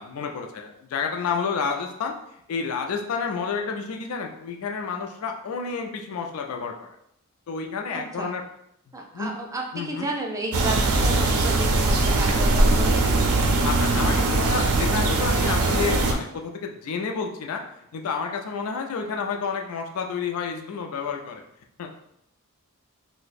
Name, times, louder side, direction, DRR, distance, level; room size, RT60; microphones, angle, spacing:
voice 1, 0.0-2.1 2.5-6.9 7.5-8.4 9.1-9.3 9.7-10.1 13.6-17.6 17.9-21.4 21.8-21.9, left 5 dB, 75° left, 3 dB, 0.4 m, -30 dB
voice 2, 7.9-8.4 8.9-13.0, right 2 dB, 15° right, 0 dB, 0.4 m, -32 dB
sound 1, 10.5-16.1, right 2 dB, 80° right, 0.5 m, -21 dB
2.6 x 2.1 x 4.0 m, 0.76 s
head